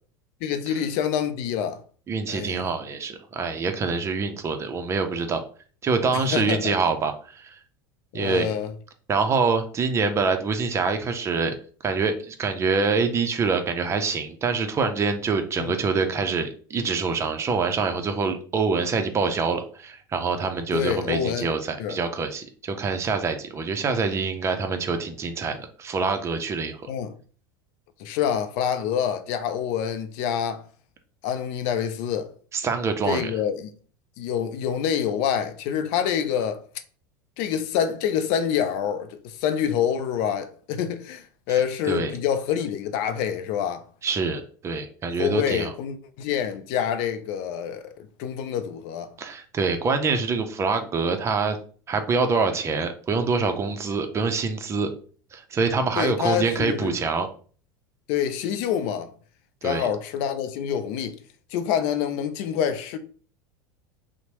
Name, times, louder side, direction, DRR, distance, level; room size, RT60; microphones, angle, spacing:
voice 1, 0.4-1.8 2.3-2.7 6.1-6.7 8.1-8.7 15.6-15.7 20.7-21.5 21.8-22.0 26.9-27.1 28.0-30.6 31.2-32.3 33.1-33.7 34.2-36.6 37.4-43.8 45.2-49.1 56.0-57.0 58.1-59.1 59.6-61.2 61.5-63.0, left 8 dB, 60° left, 0.5 m, -26 dB
voice 2, 2.1-5.4 5.8-7.6 8.1-8.5 9.1-11.5 11.8-26.8 32.5-33.3 41.8-42.1 44.0-45.7 49.2-51.6 51.9-54.9 55.3-57.3 59.6-59.9, right 4 dB, 25° right, 0.5 m, -25 dB
2.9 x 2.1 x 2.9 m
hypercardioid pair, 95°, 11 cm